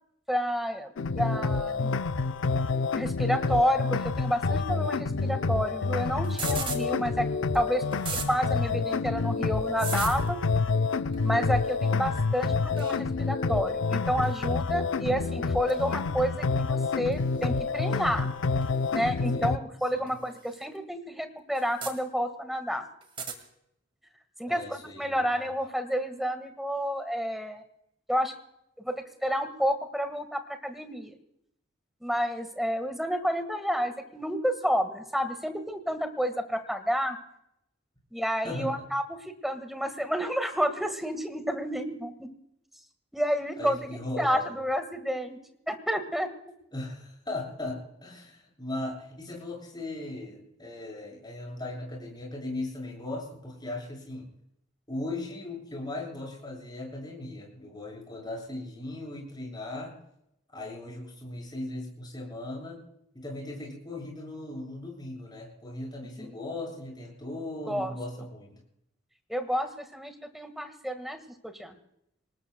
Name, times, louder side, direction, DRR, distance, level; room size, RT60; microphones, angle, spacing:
voice 1, 0.3-1.9 2.9-7.3 7.5-7.8 8.3-10.4 11.2-18.3 18.9-22.8 24.4-27.6 28.1-28.3 28.8-28.9 29.2-31.1 32.0-37.2 38.1-42.3 43.1-45.4 45.7-46.3 66.2-66.3 67.7-67.9 69.3-71.8, equal, ahead, 8 dB, 1.6 m, -30 dB
sound 1, 1.0-19.6, left 4 dB, 75° left, 0.5 m, -28 dB
sound 2, 6.2-6.8 7.5-7.6 7.9-8.3 9.8-10.3 11.1-11.3 12.8-13.0 14.2-14.4 15.7-15.8 17.1-17.2 18.6-18.7 20.1-20.2 20.5-20.6 21.5-21.9 23.0-23.4, right 5 dB, 30° right, 2.1 m, -35 dB
voice 2, 19.3-19.7 19.9-20.1 24.5-25.5 38.4-38.7 43.6-44.6 46.7-54.3 54.9-59.9 60.5-62.8 63.1-68.6, left 2 dB, 20° left, 0 dB, 7.0 m, -38 dB
26.0 x 19.5 x 2.2 m, 0.78 s
head